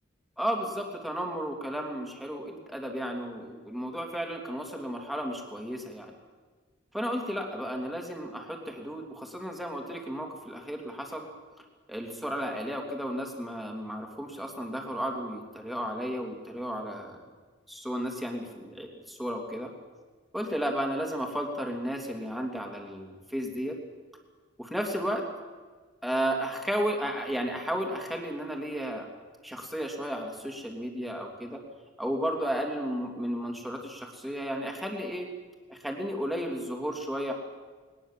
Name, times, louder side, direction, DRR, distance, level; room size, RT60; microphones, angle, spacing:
voice 1, 0.4-6.1 6.9-11.3 11.9-17.2 17.7-19.7 20.3-23.8 24.6-25.2 26.0-29.1 29.4-31.6 32.0-35.3 35.7-37.3, equal, ahead, 1 dB, 2.8 m, -33 dB
20.5 x 19.5 x 7.4 m, 1.4 s
head